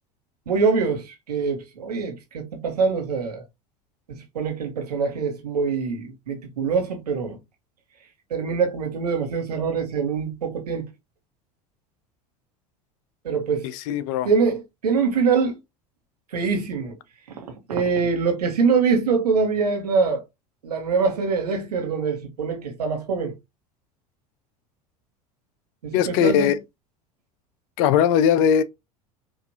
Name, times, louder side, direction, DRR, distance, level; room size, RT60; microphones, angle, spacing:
voice 1, 0.5-3.4 4.1-7.4 8.3-10.9 13.2-13.7 14.2-15.6 16.3-16.9 17.7-20.2 20.6-23.3 25.8-26.5, right 5 dB, 85° right, 1.1 m, -24 dB
voice 2, 13.6-14.3 25.9-26.6 27.8-28.6, left 8 dB, 60° left, 0.5 m, -19 dB
4.7 x 2.5 x 2.6 m
hypercardioid pair, 80°, 20 cm